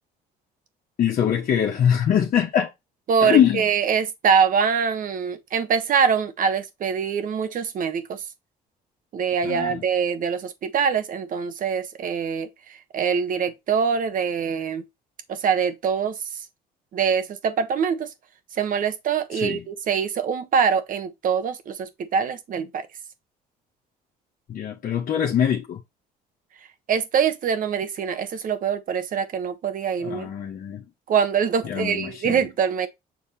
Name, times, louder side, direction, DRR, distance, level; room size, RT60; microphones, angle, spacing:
voice 1, 1.0-2.7 3.2-3.6 9.4-9.8 19.3-19.6 24.5-25.8 30.0-30.8 31.6-32.5, left 9 dB, 55° left, 1.3 m, -23 dB
voice 2, 3.1-8.2 9.1-14.8 15.3-16.4 16.9-18.1 18.6-22.9 26.9-30.3 31.1-32.9, right 6 dB, 55° right, 1.3 m, -24 dB
7.2 x 3.6 x 4.4 m
cardioid pair, 110°, 17 cm